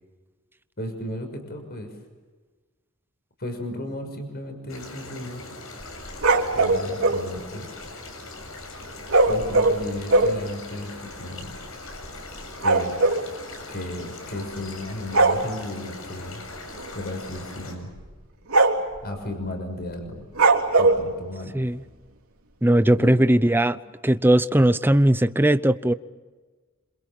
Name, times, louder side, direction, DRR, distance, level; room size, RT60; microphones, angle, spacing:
voice 1, 0.8-1.9 3.4-5.4 6.5-7.7 9.3-11.6 12.6-13.0 13.7-16.4 16.9-17.9 19.0-20.2 20.8-21.5 23.0-23.2, left 1 dB, 50° left, 6.3 m, -34 dB
sound 1, 4.7-17.7, left 2 dB, 70° left, 7.7 m, -40 dB
sound 2, 5.8-7.2 9.1-10.4 11.1-11.2 11.4-11.6 11.9-13.3 14.4-14.7 15.1-15.4 16.8-17.0 17.4-17.5 18.0-18.1 18.5-19.0 20.4-21.0, right 3 dB, 75° right, 3.5 m, -20 dB
voice 2, 22.6-23.8 24.0-25.9, right 1 dB, 10° right, 0.7 m, -19 dB
27.5 x 27.5 x 7.4 m
head